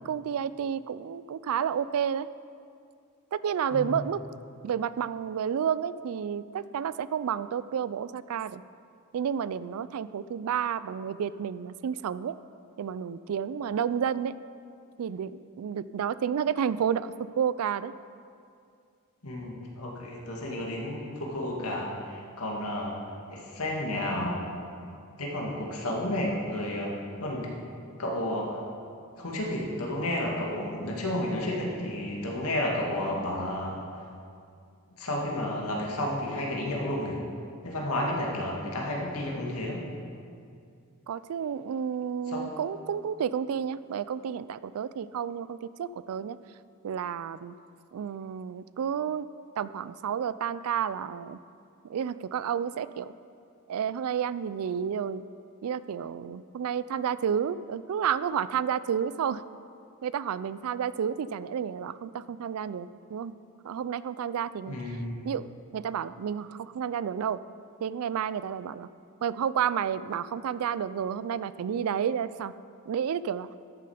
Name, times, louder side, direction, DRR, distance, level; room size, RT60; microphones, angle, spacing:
voice 1, 0.0-2.3 3.3-4.2 4.6-8.6 9.1-12.4 12.8-14.3 15.0-17.9 41.1-46.4 46.8-47.5 47.9-49.3 49.6-51.4 51.9-53.1 53.7-55.2 55.6-59.4 60.0-63.3 63.6-64.8 65.2-67.4 67.8-68.9 69.2-72.5 72.9-73.5, right 8 dB, 75° right, 16 dB, 0.3 m, -31 dB
voice 2, 19.2-23.0 23.3-24.4 25.2-26.9 27.2-27.5 28.0-28.6 29.2-33.8 35.0-37.2 37.6-39.8 42.3-42.4 64.6-65.1, left 1 dB, 80° left, -2 dB, 2.1 m, -31 dB
12.5 x 7.5 x 5.0 m, 2.4 s
head